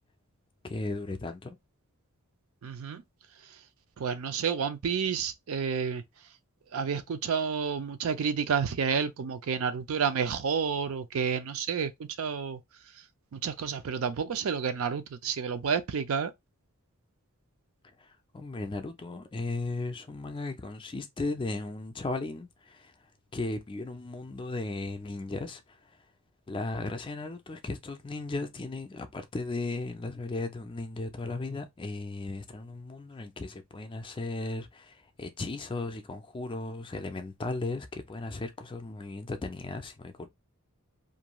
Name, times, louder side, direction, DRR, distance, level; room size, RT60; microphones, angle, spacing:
voice 1, 0.6-1.6 18.0-22.9 23.3-25.9 26.5-40.3, left 2 dB, 20° left, 0.4 m, -36 dB
voice 2, 2.6-3.0 4.0-6.0 6.7-12.6 13.3-16.3, right 6 dB, 70° right, 0.4 m, -30 dB
2.5 x 2.3 x 2.9 m
head